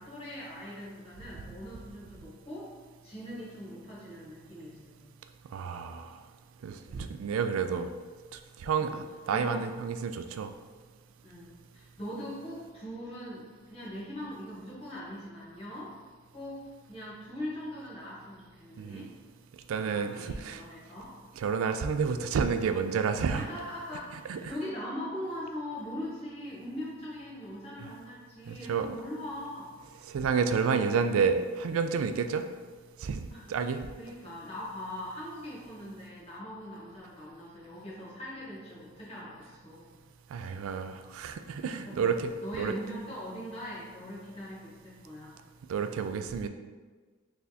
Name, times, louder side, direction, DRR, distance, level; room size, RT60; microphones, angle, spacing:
voice 1, 0.0-2.7 3.0-5.0 6.9-7.1 8.8-9.0 9.3-9.6 11.2-16.0 16.3-16.6 16.9-19.1 19.7-21.1 23.3-29.9 33.3-33.5 34.0-40.0 41.8-42.1 42.4-45.3, left 1 dB, 30° left, -7 dB, 1.2 m, -41 dB
voice 2, 5.5-6.2 6.6-7.9 8.3-10.5 18.8-19.1 19.7-20.6 21.4-23.5 24.3-24.6 27.8-27.9 28.5-28.9 30.0-32.5 33.0-33.8 40.3-42.3 42.6-42.7 45.7-46.5, right 6 dB, 75° right, 8 dB, 0.3 m, -30 dB
4.2 x 3.3 x 2.8 m, 1.4 s
head